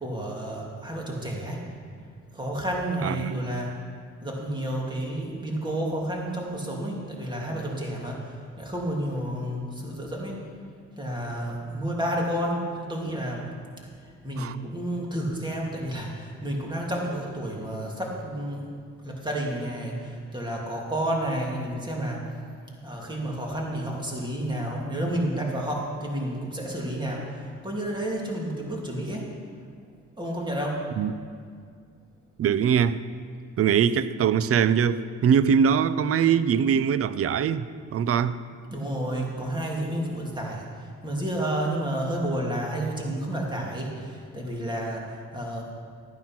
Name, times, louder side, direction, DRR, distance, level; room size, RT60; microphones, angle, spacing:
voice 1, 0.0-1.6 2.3-3.7 4.2-10.5 11.0-13.5 14.0-22.2 22.8-29.3 30.2-30.8 38.7-45.6, right 1 dB, 15° right, -2 dB, 2.8 m, -31 dB
voice 2, 3.0-3.4 14.4-14.6 31.0-31.1 32.4-33.0 33.6-38.4, right 7 dB, 50° right, 15 dB, 0.6 m, -22 dB
14.0 x 9.3 x 5.8 m, 2.1 s
cardioid pair, 90°, 30 cm